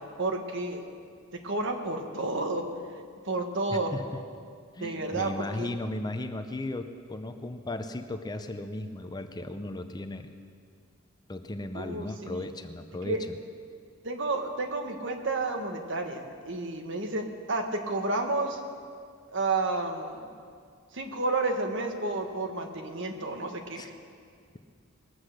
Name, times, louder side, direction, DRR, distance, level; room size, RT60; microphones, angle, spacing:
voice 1, 0.2-0.8 1.4-2.7 3.2-3.9 4.8-5.7 11.7-12.4 13.0-13.2 14.0-18.6 19.3-20.3 20.9-23.9, right 2 dB, 60° right, 4 dB, 1.4 m, -31 dB
voice 2, 3.7-4.0 4.7-10.3 11.3-13.2 23.8-23.9, left 1 dB, 20° left, 8 dB, 0.6 m, -36 dB
20.5 x 7.9 x 6.5 m, 2.2 s
head